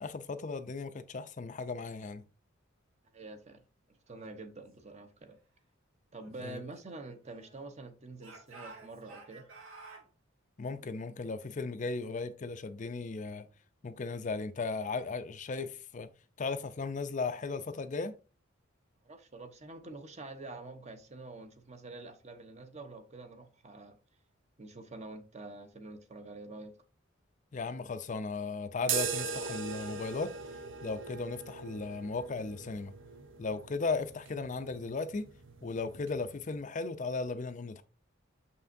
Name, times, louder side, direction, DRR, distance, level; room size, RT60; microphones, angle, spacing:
voice 1, 0.0-2.2 6.4-6.6 10.6-13.5 13.8-16.1 16.4-18.2 27.5-30.3 30.8-32.9 33.4-35.3 35.6-37.8, left 4 dB, 40° left, 0.5 m, -36 dB
voice 2, 3.1-3.6 4.1-5.4 6.1-9.5 19.0-24.0 24.6-26.7, right 2 dB, 35° right, 0.8 m, -47 dB
Speech / Shout, 6.2-7.7 8.2-10.1, right 3 dB, 90° right, 2.1 m, -52 dB
sound 1, 28.8-36.6, right 6 dB, 65° right, 0.8 m, -40 dB
6.7 x 5.6 x 2.6 m
head